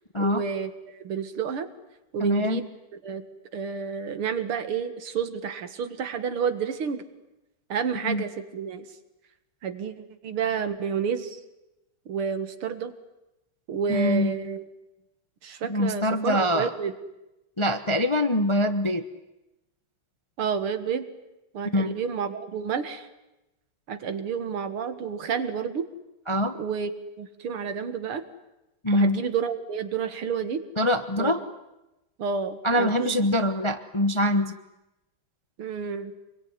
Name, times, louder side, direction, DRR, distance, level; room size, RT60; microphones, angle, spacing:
voice 1, 0.2-1.7 2.1-2.7 3.0-3.3 3.5-7.1 7.7-8.9 9.6-11.4 12.1-12.9 13.7-14.7 15.4-16.9 20.4-21.1 21.5-23.1 23.9-25.9 26.6-28.2 28.9-30.6 31.2-31.3 32.2-33.2 35.6-36.1, right 6 dB, 85° right, 9 dB, 2.6 m, -30 dB
voice 2, 2.2-2.6 8.0-8.2 13.9-14.3 15.6-16.7 17.6-19.0 21.7-22.0 26.3-26.6 28.8-29.2 30.8-31.4 32.6-34.5, left 1 dB, 25° left, 8 dB, 0.6 m, -24 dB
26.5 x 22.5 x 9.6 m, 0.96 s
omnidirectional pair, 2.3 m